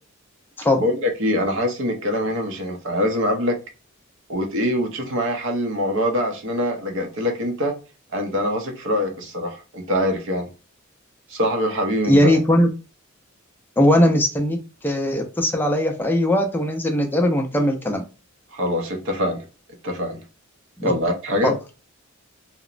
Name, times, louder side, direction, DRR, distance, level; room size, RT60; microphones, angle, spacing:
voice 1, 0.8-3.6 4.3-7.7 8.1-10.5 11.3-12.4 18.5-19.5 19.8-20.2 20.8-21.5, equal, 60° right, 3 dB, 0.6 m, -24 dB
voice 2, 12.0-12.7 13.8-18.0 20.8-20.9 21.4-21.5, left 1 dB, 10° left, 3 dB, 0.4 m, -19 dB
2.9 x 2.0 x 2.4 m, 0.32 s
head